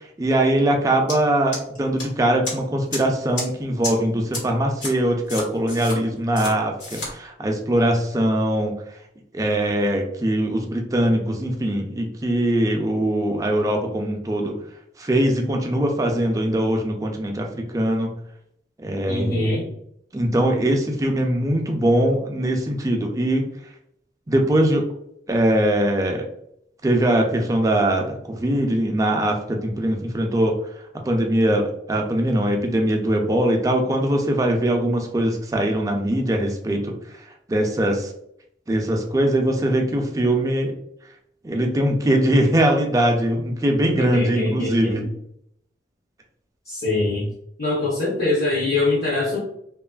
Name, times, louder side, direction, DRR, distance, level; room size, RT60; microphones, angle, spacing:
voice 1, 0.2-8.7 9.3-14.5 15.0-18.1 18.8-19.4 20.1-23.5 24.3-24.8 25.3-26.3 26.8-30.6 31.0-36.9 37.5-38.1 38.7-40.7 41.4-45.0, right 1 dB, 20° right, 2 dB, 0.3 m, -21 dB
sound 1, 1.1-1.2 1.5-2.0 2.5-2.6 2.9-3.0 3.4-3.5 3.8-3.9 4.3-4.4 4.8-4.9 5.3-6.0 6.4-6.5 6.8-7.1, left 2 dB, 90° left, 1.2 m, -29 dB
voice 2, 19.1-19.7 44.0-45.1 46.7-47.3 47.6-49.4, left 2 dB, 55° left, -5 dB, 0.6 m, -23 dB
2.8 x 2.4 x 2.2 m, 0.73 s
head